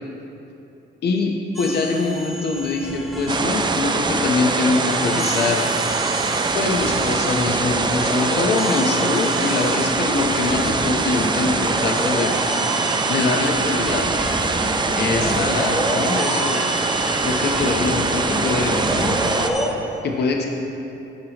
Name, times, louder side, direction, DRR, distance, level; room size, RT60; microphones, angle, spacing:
voice 1, 1.0-5.7 6.5-12.4 13.1-14.1 15.0-16.6 17.2-18.8 20.0-20.5, left 3 dB, 55° left, 1 dB, 0.9 m, -23 dB
sound 1, 1.5-19.7, right 1 dB, ahead, 1.3 m, -29 dB
sound 2, 3.3-19.5, right 3 dB, 25° right, 0.5 m, -23 dB
13.0 x 5.6 x 3.0 m, 2.8 s
cardioid pair, 90°, 20 cm